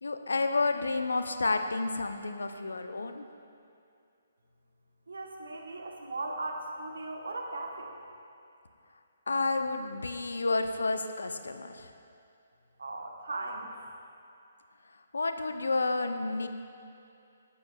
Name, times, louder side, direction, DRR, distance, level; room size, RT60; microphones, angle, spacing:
voice 1, 0.0-3.3 9.3-11.9 15.1-16.5, left 3 dB, 70° left, 8 dB, 0.5 m, -30 dB
voice 2, 5.1-7.9 12.8-13.7, right 2 dB, 70° right, 2 dB, 1.0 m, -38 dB
11.0 x 7.9 x 2.2 m, 2.5 s
figure-of-eight pair, 135°, 0 cm